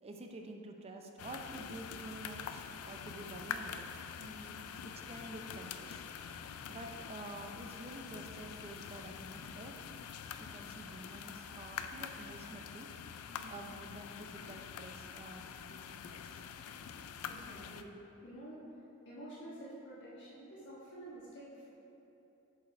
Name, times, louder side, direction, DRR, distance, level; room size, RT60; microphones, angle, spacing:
voice 1, 0.0-3.9 4.8-6.0 6.7-9.8 10.4-12.9 13.5-16.7, right 2 dB, 25° right, 3 dB, 0.5 m, -49 dB
sound 1, 1.2-17.8, left 7 dB, 70° left, 0.3 m, -46 dB
voice 2, 4.2-4.5 6.6-6.8 13.3-13.5 17.2-17.9 18.2-18.6 19.0-21.7, right 1 dB, 55° left, -8 dB, 1.4 m, -50 dB
7.3 x 4.9 x 4.2 m, 2.9 s
head